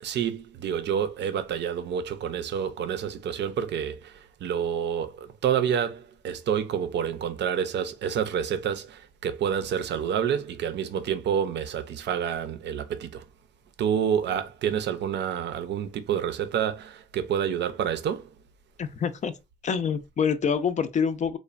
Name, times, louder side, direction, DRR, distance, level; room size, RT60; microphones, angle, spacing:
voice 1, 0.0-4.1 4.4-13.2 13.8-18.3, right 8 dB, 60° right, 0.5 m, -28 dB
voice 2, 18.8-19.3 19.6-21.4, left 6 dB, 35° left, 0.4 m, -26 dB
3.1 x 2.1 x 2.4 m
cardioid pair, 90°, 20 cm